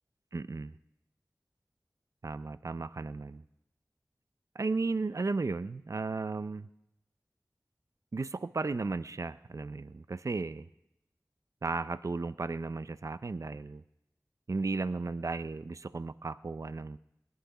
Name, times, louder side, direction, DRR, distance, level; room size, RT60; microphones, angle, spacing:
voice 1, 0.3-0.7 2.2-3.4 4.5-6.7 8.1-10.7 11.6-13.8 14.5-17.0, right 3 dB, 55° right, 14 dB, 0.4 m, -35 dB
19.5 x 10.5 x 5.0 m, 0.86 s
wide cardioid pair, 40°, 6 cm